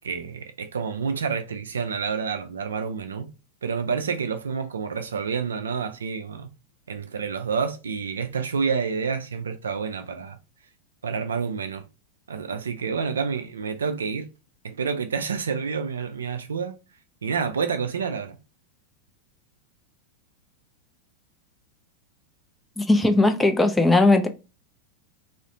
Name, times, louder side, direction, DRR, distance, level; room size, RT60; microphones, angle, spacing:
voice 1, 0.0-3.3 3.6-6.5 6.9-10.4 11.0-11.8 12.3-14.3 14.6-16.7 17.2-18.4, right 6 dB, 70° right, 0.3 m, -28 dB
voice 2, 22.8-24.3, left 2 dB, 10° left, 0.4 m, -18 dB
2.4 x 2.1 x 2.6 m
figure-of-eight pair, 90°, 0 cm